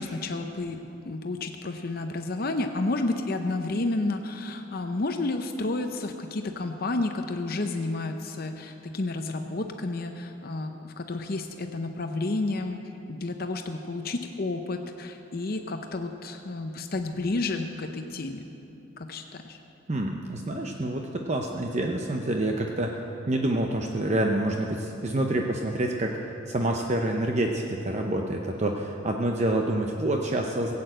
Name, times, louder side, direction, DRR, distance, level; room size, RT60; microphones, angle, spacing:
voice 1, 0.0-18.5 19.0-19.6, left 2 dB, 50° left, 5 dB, 0.7 m, -31 dB
voice 2, 19.9-30.7, right 1 dB, 35° right, 2 dB, 0.7 m, -27 dB
17.0 x 8.5 x 7.8 m, 2.9 s
head